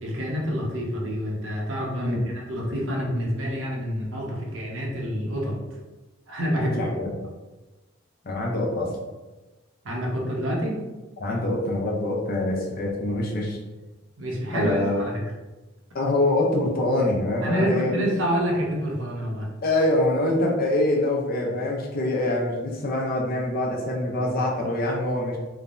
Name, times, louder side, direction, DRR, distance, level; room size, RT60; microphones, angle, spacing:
voice 1, 0.0-5.6 6.3-6.8 9.8-10.8 14.2-15.1 17.4-19.5, equal, 80° right, -2 dB, 0.7 m, -27 dB
voice 2, 6.6-7.1 8.2-9.0 11.2-13.6 14.5-15.0 15.9-18.0 19.6-25.4, left 1 dB, 50° left, 0 dB, 0.5 m, -25 dB
3.2 x 2.1 x 2.5 m, 1.1 s
head